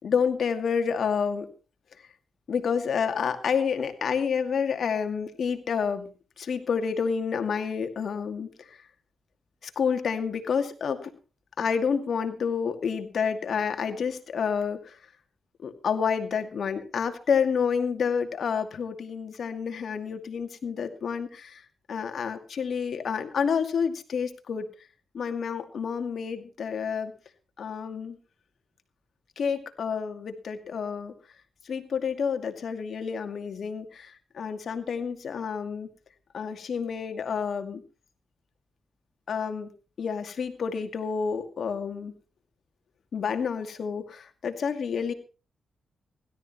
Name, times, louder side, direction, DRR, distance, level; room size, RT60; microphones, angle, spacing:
voice 1, 0.0-1.5 2.5-6.1 6.4-8.8 9.8-11.1 11.6-15.0 15.6-21.6 21.9-24.7 25.1-27.1 27.6-28.2 29.4-31.1 31.7-33.9 34.4-35.9 36.3-37.8 39.3-39.7 40.0-42.1 43.1-45.1, left 6 dB, 70° left, 7 dB, 2.4 m, -29 dB
17.0 x 13.0 x 4.4 m, 0.35 s
cardioid pair, 65°, 0 cm